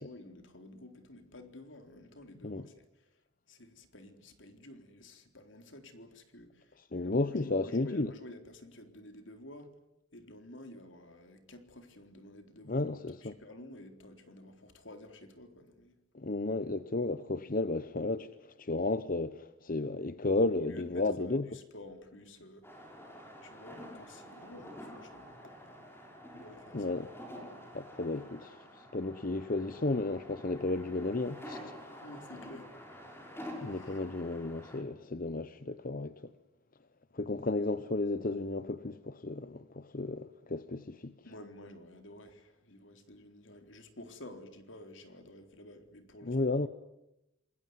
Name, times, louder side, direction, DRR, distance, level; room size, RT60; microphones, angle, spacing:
voice 1, 0.0-3.2 3.5-6.8 7.0-9.7 10.1-16.0 20.6-22.9 23.4-25.6 26.3-26.9 32.0-32.7 33.5-34.0 41.2-46.6, left 1 dB, 75° left, 3.9 m, -51 dB
voice 2, 6.9-8.1 12.7-13.3 16.1-21.4 26.7-27.1 27.7-31.7 33.6-36.3 37.1-41.1 46.2-46.7, left 2 dB, 45° left, 0.9 m, -33 dB
sound 1, 22.6-34.8, equal, 10° left, 5.9 m, -48 dB
28.0 x 21.0 x 9.6 m
head